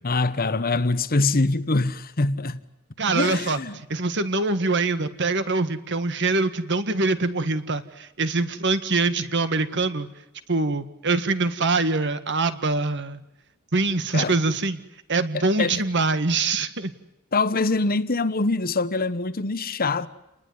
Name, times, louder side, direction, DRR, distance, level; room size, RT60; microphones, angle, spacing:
voice 1, 0.0-2.6 3.1-3.8 14.1-14.4 15.3-15.7 17.3-20.1, left 3 dB, 40° left, 1.2 m, -24 dB
voice 2, 3.0-3.6 3.9-10.1 10.5-13.2 13.7-14.8 15.1-16.9, right 3 dB, 55° right, 1.8 m, -24 dB
29.0 x 20.5 x 9.7 m
head